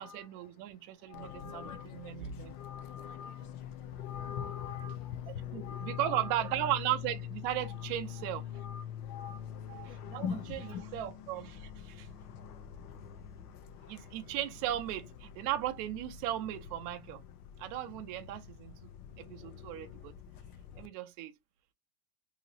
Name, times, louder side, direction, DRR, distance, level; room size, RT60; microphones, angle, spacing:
voice 1, 0.0-2.6 4.6-4.9 5.3-8.4 9.2-9.4 9.7-12.1 13.9-17.2 17.6-18.7 19.2-20.1 20.8-21.3, right 13 dB, 40° right, 0.6 m, -37 dB
Fixed-wing aircraft airplane, 1.1-20.9, left 10 dB, 80° left, 0.7 m, -45 dB
voice 2, 1.1-1.8 2.4-3.5 4.0-5.2 5.5-6.0 8.5-8.8 9.1-9.4 10.0-10.8, left 7 dB, 40° left, 0.5 m, -42 dB
2.9 x 2.8 x 2.6 m
supercardioid pair, 135°, 44 cm